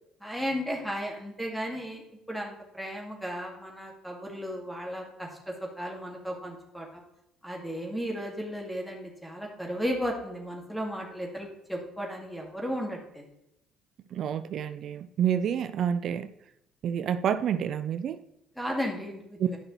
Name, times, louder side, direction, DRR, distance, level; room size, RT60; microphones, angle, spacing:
voice 1, 0.2-5.3 5.8-7.0 7.4-13.2 18.6-19.6, equal, ahead, -1 dB, 2.3 m, -35 dB
voice 2, 14.1-16.3 16.8-18.2 19.4-19.5, right 8 dB, 60° right, 12 dB, 0.4 m, -28 dB
10.5 x 5.9 x 3.3 m, 0.84 s
hypercardioid pair, 65°, 0 cm